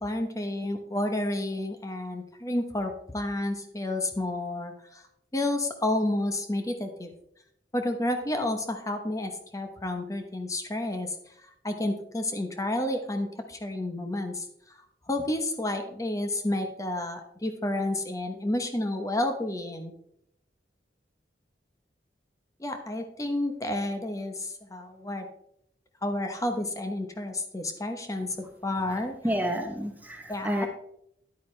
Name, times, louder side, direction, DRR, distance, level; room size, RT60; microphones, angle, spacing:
voice 1, 0.0-5.0 5.3-7.1 7.7-11.2 11.6-14.4 15.1-19.9 22.6-25.3 26.0-28.3 28.6-29.2 30.3-30.7, left 1 dB, 20° left, 5 dB, 1.0 m, -30 dB
voice 2, 29.2-30.7, equal, 10° right, 4 dB, 0.9 m, -29 dB
10.5 x 8.9 x 3.3 m, 0.73 s
head